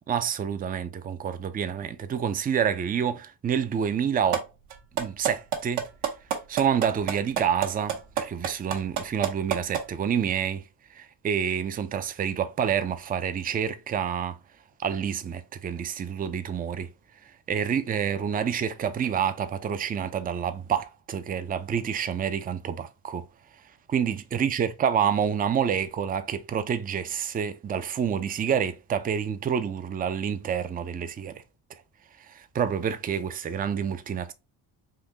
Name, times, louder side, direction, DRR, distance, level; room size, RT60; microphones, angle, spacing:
voice 1, 0.1-4.5 4.9-5.8 6.5-10.6 10.9-14.4 14.8-16.9 17.2-23.3 23.9-31.4 32.2-34.3, right 8 dB, 20° right, 0.3 m, -28 dB
sound 1, 4.3-4.4 4.7-9.8, right 9 dB, 80° right, 1.0 m, -27 dB
3.8 x 2.6 x 2.7 m
supercardioid pair, 65°, 50 cm